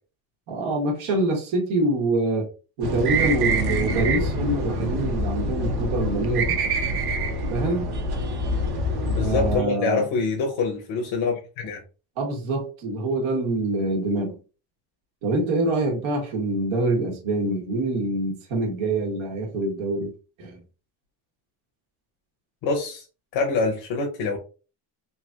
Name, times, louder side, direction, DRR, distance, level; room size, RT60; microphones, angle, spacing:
voice 1, 0.5-2.5 2.8-6.6 7.5-7.9 9.2-10.1 12.2-14.4 15.2-20.1 20.4-20.6, right 2 dB, 85° right, 1.2 m, -25 dB
sound 1, 2.8-9.6, right 1 dB, 55° right, 0.8 m, -25 dB
voice 2, 9.0-11.8 22.6-23.0 23.3-24.4, left 4 dB, 75° left, 0.8 m, -25 dB
3.2 x 2.7 x 2.3 m
cardioid pair, 105°, 47 cm